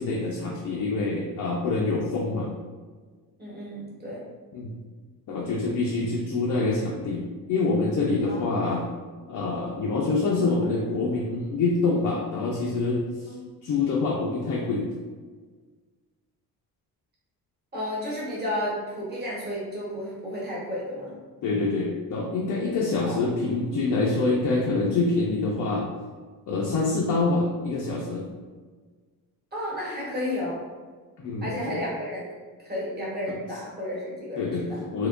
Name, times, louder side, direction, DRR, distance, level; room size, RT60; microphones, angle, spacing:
voice 1, 0.0-2.5 4.5-4.7 5.3-8.9 9.3-13.1 13.6-14.9 21.4-25.9 26.5-28.3 31.2-31.8 33.3-33.4 34.4-35.1, left 3 dB, 55° left, -2 dB, 0.5 m, -26 dB
voice 2, 3.4-4.2 8.3-8.5 13.3-13.4 17.7-21.2 23.0-23.2 29.5-30.6 31.4-34.8, left 1 dB, 25° right, -6 dB, 1.1 m, -32 dB
3.5 x 2.9 x 2.4 m, 1.5 s
cardioid pair, 175°, 39 cm